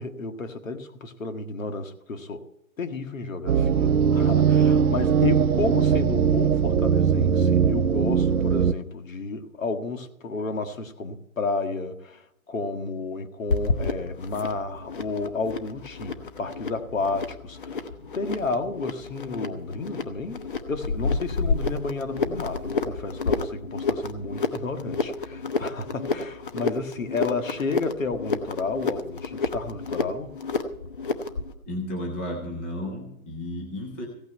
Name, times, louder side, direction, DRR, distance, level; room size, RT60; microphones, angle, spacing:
voice 1, 0.0-2.5 2.8-30.4, left 3 dB, 65° left, 7 dB, 1.9 m, -32 dB
futuristic ambient, 3.5-8.7, right 7 dB, 85° right, 0.8 m, -20 dB
sound 1, 13.5-31.5, left 4 dB, 35° left, 1.1 m, -30 dB
voice 2, 31.7-34.1, left 1 dB, 10° left, 0 dB, 0.8 m, -33 dB
16.0 x 6.1 x 9.1 m, 0.81 s
hypercardioid pair, 165°, 42 cm